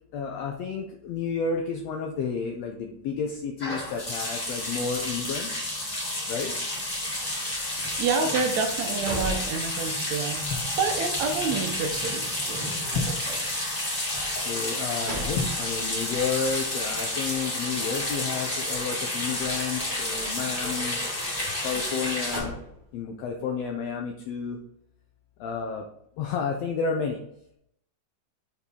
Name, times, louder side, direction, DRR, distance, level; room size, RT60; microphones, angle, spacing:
voice 1, 0.1-5.5 6.3-6.5 14.5-21.0 21.6-22.5 22.9-24.6 25.4-25.8 26.2-27.2, left 5 dB, 80° left, 2 dB, 1.4 m, -31 dB
sound 1, 3.6-22.4, left 1 dB, 25° left, 1.2 m, -30 dB
sound 2, 6.2-9.1 9.4-9.7 10.3-10.8 12.8-13.3 15.2-15.7, left 4 dB, 60° left, 1.8 m, -36 dB
voice 2, 8.0-10.4 10.8-13.4, right 5 dB, 75° right, 5 dB, 1.7 m, -29 dB
sound 3, 8.7-10.3 10.7-10.8 14.6-15.9 21.9-23.2, equal, 30° right, 0.9 m, -37 dB
6.1 x 5.8 x 3.7 m, 0.74 s
omnidirectional pair, 3.7 m